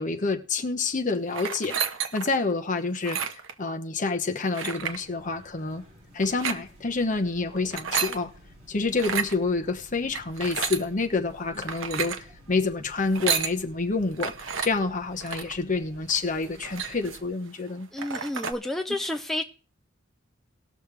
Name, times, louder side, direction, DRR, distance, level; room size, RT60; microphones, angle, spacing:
voice 1, 0.0-1.8 2.1-3.3 3.6-5.8 6.1-8.3 8.7-14.3 14.6-17.9, left 3 dB, 40° left, 1.0 m, -28 dB
sound 1, 1.3-2.4 2.9-3.5 4.5-5.0 6.2-6.6 7.6-8.2 8.9-9.3 10.1-10.8 11.6-12.2 13.0-13.5 14.2-14.7 15.2-15.5 16.1-16.2 16.4-17.3 17.7-17.8 18.0-18.5, right 7 dB, 80° right, 0.9 m, -31 dB
sound 2, 4.7-17.3, equal, 30° right, 4.9 m, -52 dB
voice 2, 17.9-19.4, left 1 dB, ahead, 0.6 m, -30 dB
19.0 x 6.5 x 3.4 m
head